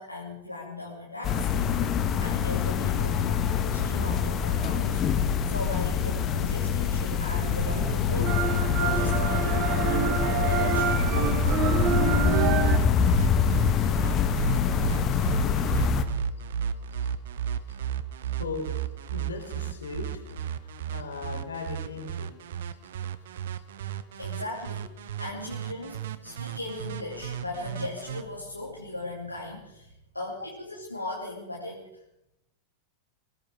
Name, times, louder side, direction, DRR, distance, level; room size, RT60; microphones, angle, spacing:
voice 1, 0.0-1.8 2.2-11.3 24.2-32.0, left 2 dB, 85° left, -4 dB, 2.5 m, -38 dB
Roomtone Bedroom, 1.2-16.0, left 7 dB, 30° left, 1.3 m, -25 dB
sound 1, 6.9-12.8, right 8 dB, 40° right, 1.5 m, -28 dB
sound 2, 10.7-28.2, right 9 dB, 60° right, 1.0 m, -33 dB
voice 2, 18.4-18.7 19.1-20.4 20.6-22.3 23.0-23.1 23.9-24.0, left 4 dB, 70° left, 3 dB, 3.8 m, -38 dB
22.0 x 16.5 x 3.7 m, 0.82 s
figure-of-eight pair, 90°, 0 cm